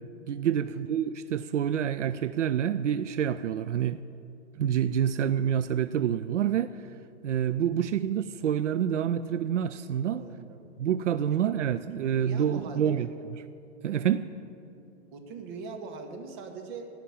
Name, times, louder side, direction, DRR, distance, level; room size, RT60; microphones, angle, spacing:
voice 1, 0.3-4.0 4.6-6.8 7.2-10.2 10.8-13.4 13.8-14.2, right 9 dB, 85° right, 12 dB, 0.5 m, -27 dB
voice 2, 10.2-10.7 11.3-11.5 11.9-13.1 14.8-16.9, right 4 dB, 40° right, 4 dB, 1.9 m, -42 dB
15.5 x 5.9 x 9.8 m, 2.6 s
hypercardioid pair, 125°, 35 cm